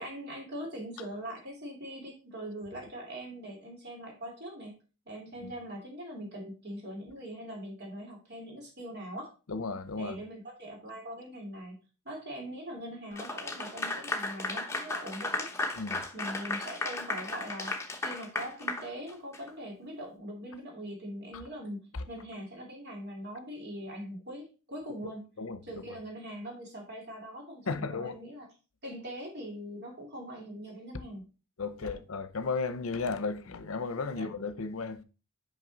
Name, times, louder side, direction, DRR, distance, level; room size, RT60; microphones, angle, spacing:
voice 1, 0.0-4.8 5.1-9.3 10.0-15.5 16.1-25.3 25.7-28.5 28.8-31.3 31.8-31.9 34.1-34.3, equal, 50° right, 2.4 m, -42 dB
voice 2, 9.5-10.2 15.7-16.0 21.3-21.4 21.9-22.0 25.4-25.6 27.7-28.2 31.6-35.0, left 4 dB, 65° left, 0.7 m, -34 dB
Clapping / Applause, 13.2-19.5, left 2 dB, 10° left, 0.9 m, -35 dB
6.3 x 5.3 x 3.9 m
head